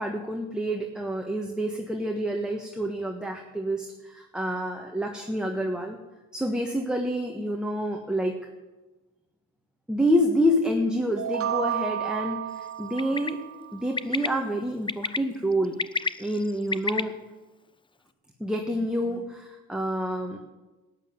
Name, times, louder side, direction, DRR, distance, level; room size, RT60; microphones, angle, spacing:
voice 1, 0.0-6.0 6.3-8.3 9.9-13.4 13.7-15.8 16.2-17.1 18.4-20.4, equal, ahead, 1 dB, 1.5 m, -28 dB
sound 1, 11.2-13.9, right 10 dB, 45° right, 1.0 m, -32 dB
Bird, 13.0-13.3 14.0-14.3 14.9-15.2 15.6-17.0, left 4 dB, 15° left, 0.5 m, -28 dB
12.0 x 9.4 x 7.3 m, 1.1 s
cardioid pair, 85°, 32 cm